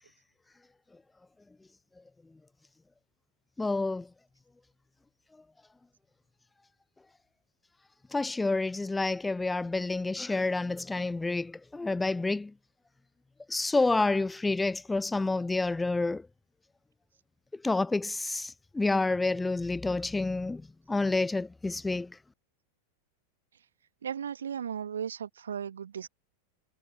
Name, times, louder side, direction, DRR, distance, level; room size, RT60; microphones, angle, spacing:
voice 1, 3.6-4.1 8.1-12.5 13.5-16.2 17.6-20.6 20.9-22.1, left 3 dB, 10° left, 0.4 m, -29 dB
voice 2, 24.0-26.1, right 8 dB, 65° right, 2.5 m, -36 dB
figure-of-eight pair, 90°, 0 cm